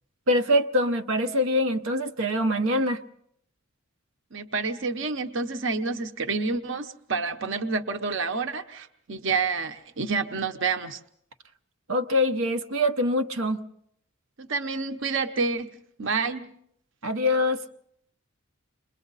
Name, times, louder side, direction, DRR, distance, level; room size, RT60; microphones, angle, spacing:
voice 1, 0.3-3.0 11.9-13.6 17.0-17.6, left 1 dB, 90° right, 1.0 m, -24 dB
voice 2, 4.3-11.0 14.4-15.7 16.0-16.5, right 4 dB, 60° right, 1.0 m, -28 dB
29.5 x 22.5 x 4.1 m
head